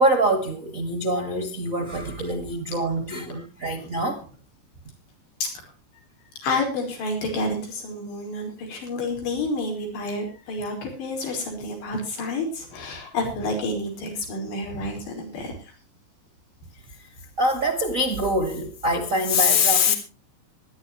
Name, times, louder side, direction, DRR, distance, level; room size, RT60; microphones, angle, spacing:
voice 1, 0.0-4.2 17.0-17.1 17.4-19.9, left 1 dB, 75° right, 0.7 m, -24 dB
voice 2, 6.4-15.7, left 2 dB, 80° left, 7.0 m, -29 dB
24.0 x 11.5 x 3.1 m
omnidirectional pair, 4.9 m